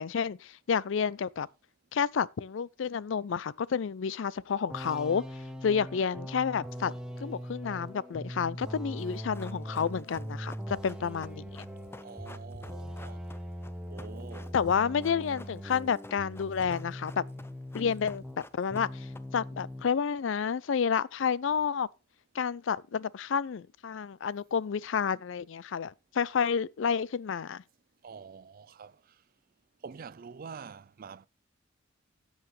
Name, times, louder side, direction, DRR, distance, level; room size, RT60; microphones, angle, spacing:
voice 1, 0.0-1.5 1.9-5.2 5.6-6.9 7.2-11.6 14.5-17.2 17.7-18.2 18.5-19.1 19.3-21.9 22.3-27.6, left 6 dB, 70° left, 0.4 m, -30 dB
sound 1, 4.7-18.4 18.7-19.9, equal, 5° right, 1.1 m, -41 dB
Run, 9.0-19.6 19.9-20.0, left 2 dB, 10° left, 0.6 m, -51 dB
voice 2, 12.0-13.3 13.9-14.6 28.0-29.0 29.8-31.3, right 5 dB, 45° right, 0.4 m, -46 dB
13.0 x 8.0 x 3.2 m
head